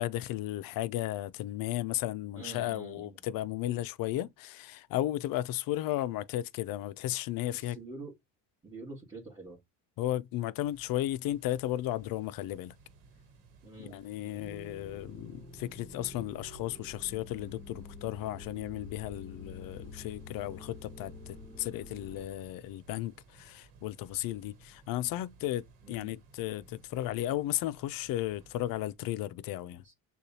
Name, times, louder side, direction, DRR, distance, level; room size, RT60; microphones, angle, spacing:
voice 1, 0.0-7.8 10.0-12.7 13.8-29.8, left 14 dB, 60° left, 0.5 m, -34 dB
voice 2, 2.3-3.2 7.5-8.1 8.6-9.6 13.6-14.0 14.2-14.5 25.8-26.1 29.8-29.9, right 3 dB, 10° right, 2.0 m, -46 dB
sound 1, 10.5-28.9, right 4 dB, 85° right, 1.2 m, -59 dB
sound 2, 14.4-22.2, left 3 dB, 15° left, 2.4 m, -48 dB
6.5 x 2.4 x 2.8 m
supercardioid pair, 95°, 40 cm